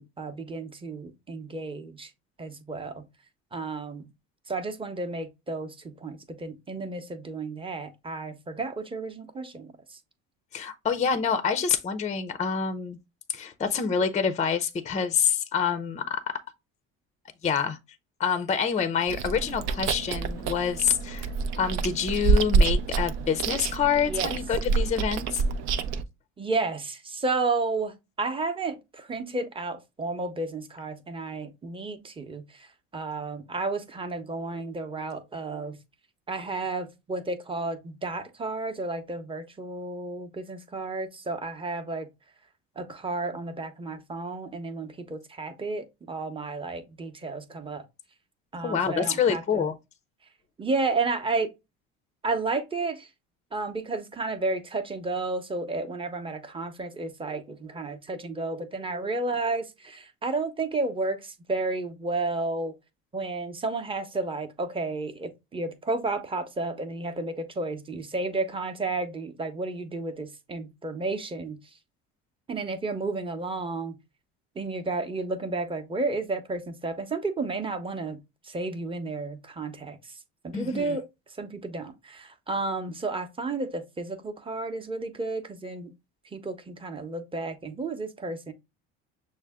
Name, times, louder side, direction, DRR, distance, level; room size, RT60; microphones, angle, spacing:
voice 1, 0.0-2.1 2.4-3.0 3.5-4.1 4.5-10.0 24.0-24.3 26.4-35.8 36.3-42.1 42.8-47.8 48.5-49.7 50.6-51.5 52.2-53.1 53.5-62.7 63.1-71.8 72.5-74.0 74.5-85.9 86.3-88.5, right 3 dB, 15° right, 0.8 m, -32 dB
voice 2, 10.5-13.0 13.3-16.3 17.4-17.8 18.2-21.3 21.6-25.4 48.6-49.7 80.5-81.0, left 7 dB, 20° left, 0.5 m, -27 dB
Chewing mastication, 19.1-26.0, right 4 dB, 55° right, 0.6 m, -27 dB
6.3 x 2.1 x 3.5 m
supercardioid pair, 85°, 32 cm